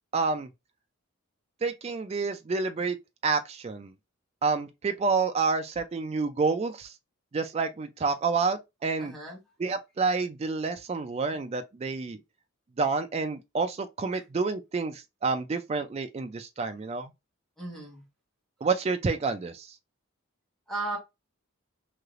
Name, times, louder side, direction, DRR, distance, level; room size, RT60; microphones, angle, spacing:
voice 1, 0.1-0.5 1.6-3.0 3.2-3.9 4.4-6.9 7.3-9.1 9.6-12.2 12.8-17.1 18.6-19.7, right 4 dB, 30° right, 0.3 m, -29 dB
voice 2, 9.0-9.4 14.1-14.2 17.6-18.0 20.7-21.0, right 2 dB, ahead, 1.3 m, -35 dB
3.2 x 2.8 x 2.4 m
head